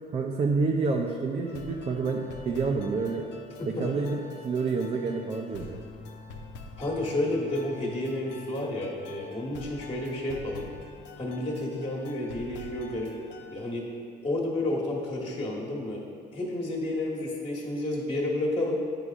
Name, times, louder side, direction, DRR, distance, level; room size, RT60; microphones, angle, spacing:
voice 1, 0.1-3.3 3.7-5.8, right 4 dB, 35° right, 1 dB, 0.5 m, -28 dB
sound 1, 1.4-13.6, left 4 dB, 75° left, 0.6 m, -46 dB
voice 2, 3.6-4.0 6.8-10.6 11.2-13.1 13.5-13.9 14.2-16.0 16.3-18.8, left 1 dB, 30° left, -4 dB, 1.3 m, -30 dB
9.6 x 4.8 x 2.4 m, 2.5 s
cardioid pair, 120°, 19 cm